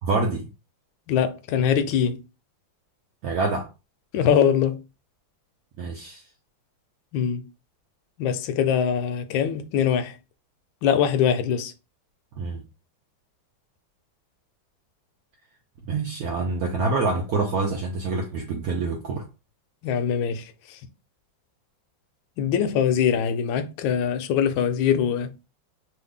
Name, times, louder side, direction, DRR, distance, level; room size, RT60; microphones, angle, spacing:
voice 1, 0.0-0.5 3.2-3.7 5.8-6.2 12.3-12.6 15.8-19.3, right 3 dB, 75° right, 0.8 m, -26 dB
voice 2, 1.1-2.2 4.1-4.8 7.1-7.4 8.2-10.1 10.8-11.7 19.8-20.8 22.4-25.3, left 8 dB, 80° left, 1.3 m, -23 dB
3.2 x 2.4 x 3.5 m
omnidirectional pair, 2.2 m